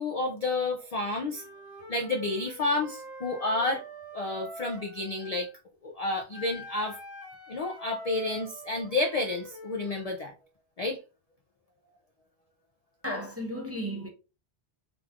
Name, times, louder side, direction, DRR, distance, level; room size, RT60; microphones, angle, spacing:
voice 1, 0.0-1.4 1.9-3.8 4.1-5.5 5.8-7.0 7.5-10.3 10.8-11.0, left 2 dB, 55° left, 0.4 m, -30 dB
Wind instrument woodwind instrument, 1.3-5.5 6.3-10.2, equal, 75° left, 1.9 m, -44 dB
voice 2, 13.0-14.1, equal, 15° right, 0.7 m, -34 dB
3.6 x 3.0 x 2.4 m
omnidirectional pair, 1.2 m